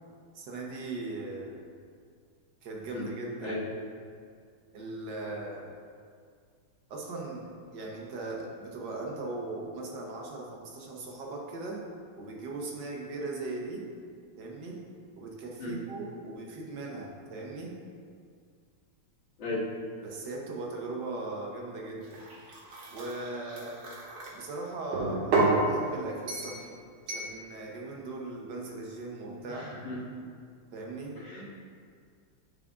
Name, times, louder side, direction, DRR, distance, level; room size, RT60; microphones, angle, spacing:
voice 1, 0.3-1.6 2.6-3.6 4.7-5.7 6.9-11.8 12.2-13.8 14.4-14.8 15.2-17.7 20.0-22.2 22.9-23.8 24.3-29.7 30.7-31.2, right 2 dB, 60° right, -1 dB, 1.5 m, -39 dB
sound 1, 22.0-24.3 24.9-25.6 26.3-26.6 27.1-27.3, right 3 dB, 80° right, 2.1 m, -30 dB
voice 2, 29.5-30.0 31.2-31.4, left 2 dB, 65° left, -8 dB, 2.5 m, -35 dB
10.5 x 4.9 x 2.5 m, 2.1 s
omnidirectional pair, 2.3 m